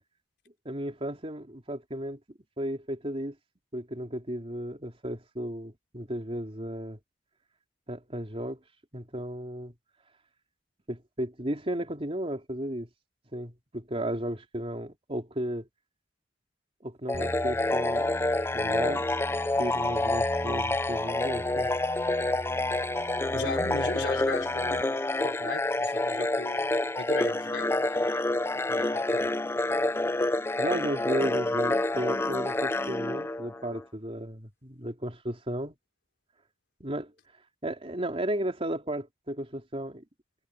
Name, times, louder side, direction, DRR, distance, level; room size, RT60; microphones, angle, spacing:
voice 1, 0.6-2.2 2.6-3.3 3.7-7.0 7.9-8.6 8.9-9.7 10.9-12.9 13.3-15.7 16.8-18.1 18.5-19.1 19.6-21.7 30.6-35.7 36.8-37.1 37.6-40.0, right 1 dB, 35° right, 3.4 m, -34 dB
sound 1, 17.1-33.8, left 2 dB, 15° left, 0.4 m, -28 dB
sound 2, 17.1-24.8, equal, 15° right, 5.8 m, -42 dB
voice 2, 23.3-26.7 27.0-28.2 28.7-29.3, left 3 dB, 75° left, 4.4 m, -37 dB
head